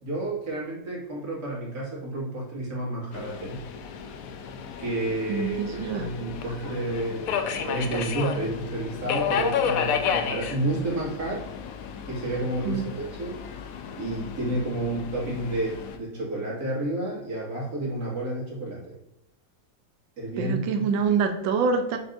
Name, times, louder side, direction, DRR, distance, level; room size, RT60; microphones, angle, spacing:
voice 1, 0.0-3.7 4.8-11.5 12.1-13.4 14.0-19.0 20.2-20.9, right 1 dB, 55° right, -6 dB, 2.6 m, -30 dB
Subway metro underground, 3.1-16.0, left 7 dB, 70° left, 0.8 m, -32 dB
voice 2, 5.3-6.1 12.6-12.8 20.4-22.0, right 5 dB, 90° right, 6 dB, 1.5 m, -25 dB
6.5 x 6.0 x 2.6 m, 0.83 s
omnidirectional pair, 2.0 m